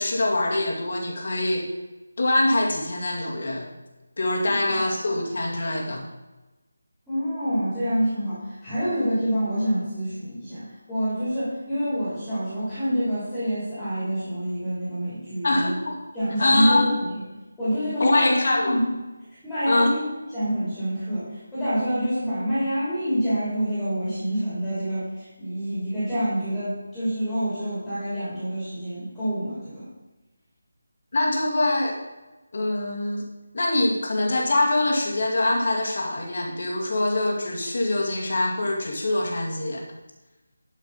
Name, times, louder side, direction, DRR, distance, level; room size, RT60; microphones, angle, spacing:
voice 1, 0.0-1.7 2.2-3.7 4.2-6.0 15.4-16.0 16.4-16.9 18.0-18.8 19.7-20.0 31.1-32.0 32.5-33.3 33.5-39.8, left 2 dB, 50° left, 0 dB, 2.1 m, -24 dB
voice 2, 7.1-15.7 16.1-17.2 17.6-18.3 18.6-18.8 19.4-20.1 20.3-29.9, equal, 5° left, -14 dB, 3.0 m, -27 dB
12.0 x 5.2 x 5.5 m, 1.1 s
figure-of-eight pair, 175°, 0 cm